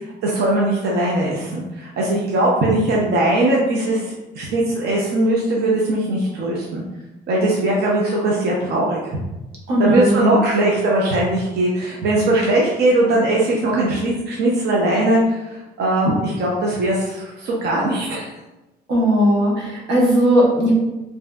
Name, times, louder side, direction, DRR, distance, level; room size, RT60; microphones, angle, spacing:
voice 1, 0.2-6.8 7.3-9.2 9.8-18.3, right 1 dB, 60° right, -4 dB, 0.6 m, -20 dB
voice 2, 9.7-10.4 18.9-20.7, equal, 80° right, -3 dB, 1.0 m, -17 dB
3.1 x 2.7 x 2.3 m, 1.0 s
cardioid pair, 105°, 19 cm